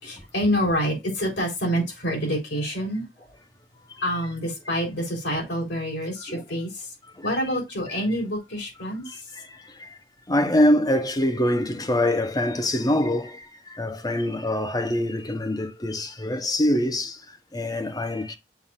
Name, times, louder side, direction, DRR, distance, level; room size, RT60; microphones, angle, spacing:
voice 1, 0.0-3.1 3.7-6.9 7.2-9.2, equal, 70° left, 4.1 m, -27 dB
voice 2, 9.1-10.0 10.3-18.4, left 1 dB, 20° left, 0.8 m, -25 dB
6.9 x 2.5 x 5.6 m
head